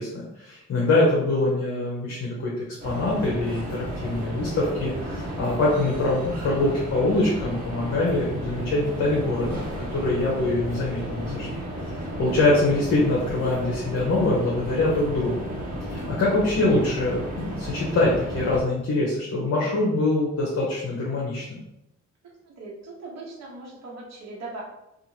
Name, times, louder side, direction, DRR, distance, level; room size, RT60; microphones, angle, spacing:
voice 1, 0.0-11.6 12.2-15.5 15.8-21.6, left 2 dB, 50° left, -5 dB, 0.8 m, -24 dB
sound 1, 2.8-18.6, equal, 30° right, 1.2 m, -33 dB
voice 2, 22.6-24.6, right 2 dB, 60° right, -4 dB, 1.1 m, -39 dB
2.8 x 2.4 x 2.8 m, 0.87 s
cardioid pair, 90°, 30 cm